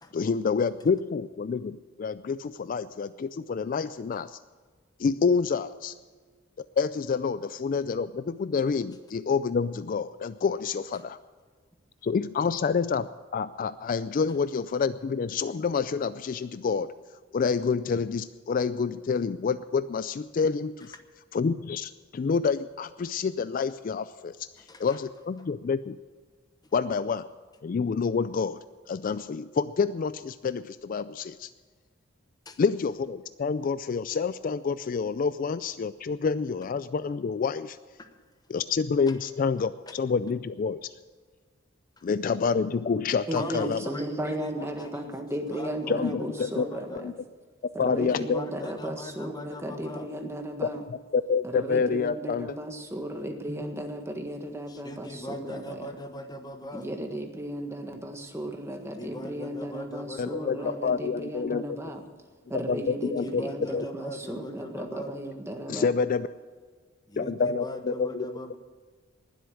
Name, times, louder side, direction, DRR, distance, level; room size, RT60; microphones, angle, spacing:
voice 1, 0.1-4.4 5.0-5.9 6.8-11.2 12.0-16.9 17.3-20.9 21.3-24.5 24.8-26.0 26.7-27.2 27.6-28.6 28.9-31.5 32.6-37.8 38.5-40.9 42.0-43.8 45.9-46.7 46.9-47.1 47.8-48.4 51.1-52.5 60.2-61.6 62.7-63.4 63.7-63.8 65.7-66.3 67.2-68.4, left 5 dB, 45° left, 14 dB, 0.3 m, -28 dB
voice 2, 24.6-25.0 32.5-32.6 38.0-38.2 39.1-39.2 39.9-40.0 43.3-45.1 45.5-47.1 48.0-50.1 54.7-56.9 59.0-60.8 63.2-65.2 67.1-68.6, left 1 dB, 20° left, 8 dB, 1.0 m, -40 dB
voice 3, 43.3-47.1 47.7-50.8 51.4-55.9 56.7-62.0 62.5-65.9, right 1 dB, 15° right, 4 dB, 1.5 m, -35 dB
20.0 x 8.0 x 6.3 m, 1.5 s
head